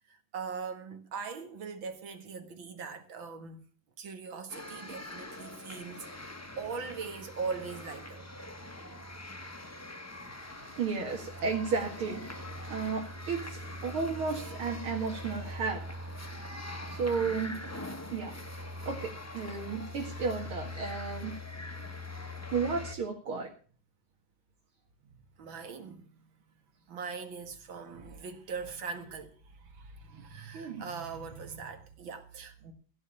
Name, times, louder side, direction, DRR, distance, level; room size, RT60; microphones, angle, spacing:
voice 1, 0.1-3.6 4.0-8.3 14.3-14.5 17.2-17.7 18.0-18.1 21.8-21.9 25.0-26.3 26.9-32.7, right 5 dB, 70° right, 2.5 m, -41 dB
sound 1, 4.5-22.9, left 1 dB, 10° left, 0.7 m, -42 dB
voice 2, 10.8-12.2 12.7-15.8 16.8-17.6 18.1-18.4 18.9-21.4 22.5-23.5 30.1-30.2 30.5-30.8, right 5 dB, 90° right, 2.8 m, -33 dB
16.0 x 5.5 x 8.7 m
omnidirectional pair, 2.3 m